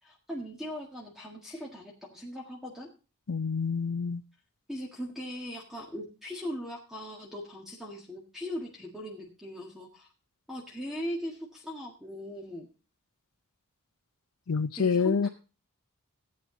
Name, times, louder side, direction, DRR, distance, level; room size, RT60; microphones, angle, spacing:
voice 1, 0.0-2.9 4.7-10.1 10.5-12.7 14.8-15.3, equal, ahead, 1.7 m, -39 dB
voice 2, 3.3-4.2 14.5-15.3, left 5 dB, 80° left, 0.6 m, -27 dB
14.5 x 8.8 x 3.8 m
head